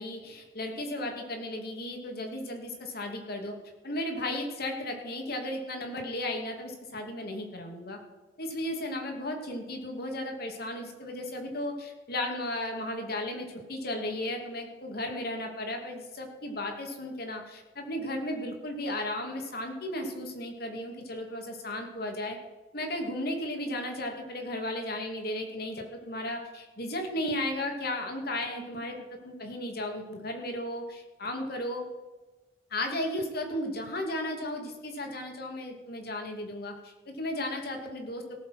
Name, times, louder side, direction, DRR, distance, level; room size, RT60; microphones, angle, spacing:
voice 1, 0.0-3.5 3.8-8.0 8.4-22.4 22.7-29.0 29.2-31.8 32.7-38.4, left 1 dB, 60° left, 3 dB, 2.7 m, -35 dB
18.0 x 7.3 x 6.1 m, 1.2 s
head